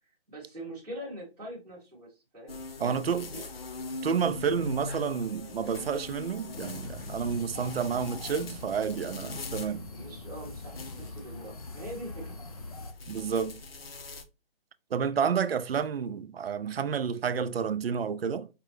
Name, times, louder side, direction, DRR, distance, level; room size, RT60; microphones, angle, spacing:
voice 1, 0.3-3.4 9.9-12.3, right 1 dB, 5° right, 0.8 m, -43 dB
sound 1, 2.5-14.2, left 3 dB, 70° left, 0.9 m, -42 dB
voice 2, 2.8-3.3 4.0-9.9 13.1-13.6 14.9-18.5, right 6 dB, 75° right, 0.5 m, -30 dB
sound 2, 6.5-12.9, left 2 dB, 40° left, 0.5 m, -43 dB
4.7 x 2.2 x 3.2 m
hypercardioid pair, 170°, 30 cm